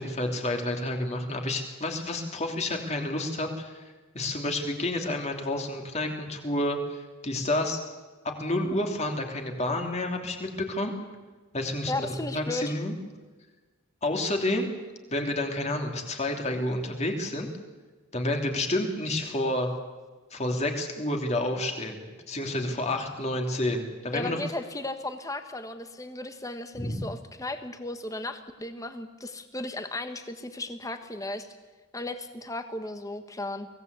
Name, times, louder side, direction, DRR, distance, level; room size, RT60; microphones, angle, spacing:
voice 1, 0.0-3.8 4.1-7.8 8.4-10.9 11.5-12.9 14.0-14.7 15.1-17.5 18.1-19.7 20.3-24.4 26.7-27.0, left 1 dB, 35° left, 3 dB, 2.9 m, -29 dB
voice 2, 11.9-12.7 24.1-31.5 31.9-33.7, left 2 dB, 15° left, 8 dB, 1.5 m, -35 dB
23.5 x 17.5 x 8.2 m, 1.3 s
head